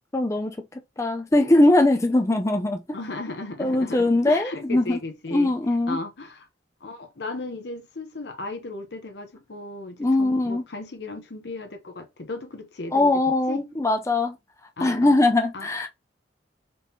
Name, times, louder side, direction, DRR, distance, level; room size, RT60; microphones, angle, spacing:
voice 1, 0.1-3.0 3.6-5.0 5.3-6.0 10.0-10.6 12.9-14.4 14.8-15.9, left 2 dB, 15° left, 0.5 m, -21 dB
voice 2, 2.9-5.5 5.9-6.5 6.8-13.1 13.5-13.6 14.8-15.2 15.5-15.9, left 2 dB, 70° left, 0.9 m, -36 dB
4.1 x 2.8 x 3.6 m
head